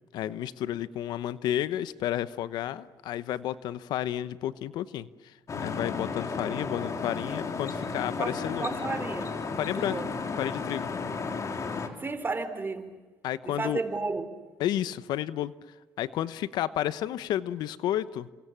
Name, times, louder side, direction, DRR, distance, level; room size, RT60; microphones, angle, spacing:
voice 1, 0.1-8.7 9.6-10.0 10.4-10.9 13.2-13.8 14.6-15.5 16.0-18.3, left 12 dB, 80° left, 15 dB, 1.0 m, -31 dB
sound 1, 5.5-11.9, left 4 dB, 45° left, 3.7 m, -33 dB
voice 2, 8.2-9.4 9.8-10.1 12.0-12.9 13.4-14.3, right 3 dB, 30° right, 10 dB, 4.0 m, -33 dB
29.0 x 26.5 x 7.4 m, 1.3 s
supercardioid pair, 70°, 7 cm